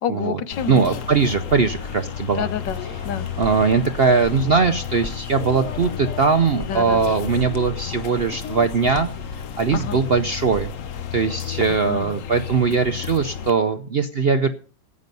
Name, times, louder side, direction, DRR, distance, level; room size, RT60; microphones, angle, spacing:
voice 1, 0.0-0.9 2.3-3.3 6.7-7.2 9.7-10.0 11.7-12.3, left 9 dB, 85° left, 12 dB, 1.7 m, -29 dB
sound 1, 0.5-13.5, left 9 dB, 55° left, 1.1 m, -32 dB
sound 2, 0.7-13.8, right 1 dB, 35° right, 3.9 m, -50 dB
voice 2, 0.7-2.5 3.4-9.1 9.6-10.7 11.1-14.5, right 5 dB, 55° right, 8 dB, 0.6 m, -20 dB
sound 3, 3.4-10.9, equal, 15° left, 0.7 m, -42 dB
13.5 x 9.4 x 5.4 m, 0.42 s
omnidirectional pair, 1.9 m